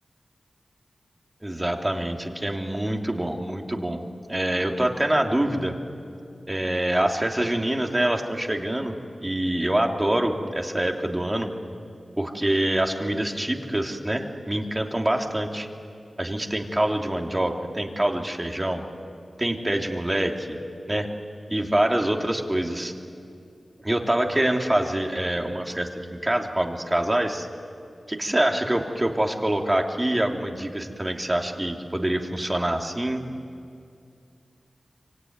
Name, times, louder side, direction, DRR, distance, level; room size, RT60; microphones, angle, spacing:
voice 1, 1.4-4.0 4.3-5.7 6.5-8.9 9.2-11.5 12.2-15.7 16.2-18.8 19.4-20.6 20.9-21.1 21.5-22.9 23.8-27.5 28.1-33.2, right 1 dB, 20° right, 3 dB, 2.6 m, -25 dB
25.0 x 24.5 x 9.5 m, 2.5 s
cardioid pair, 50°, 0 cm